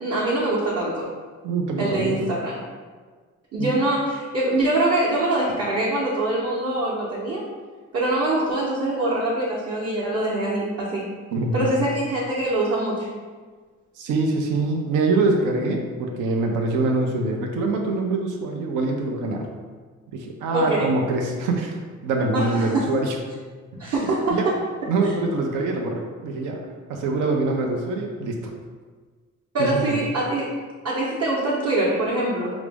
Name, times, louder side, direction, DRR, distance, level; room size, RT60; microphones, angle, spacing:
voice 1, 0.0-1.1 1.8-2.5 3.5-7.5 7.9-11.0 11.5-13.1 20.5-20.9 22.3-22.9 23.8-24.4 29.5-30.5 30.8-32.5, right 2 dB, 55° right, -7 dB, 0.9 m, -24 dB
voice 2, 1.4-2.2 3.6-3.7 11.3-11.7 14.0-19.5 20.1-21.8 22.0-23.2 24.3-24.5 24.9-26.6 26.9-28.5 29.6-30.0, right 3 dB, 85° right, 2 dB, 0.6 m, -24 dB
4.8 x 2.0 x 3.4 m, 1.5 s
cardioid pair, 90°, 30 cm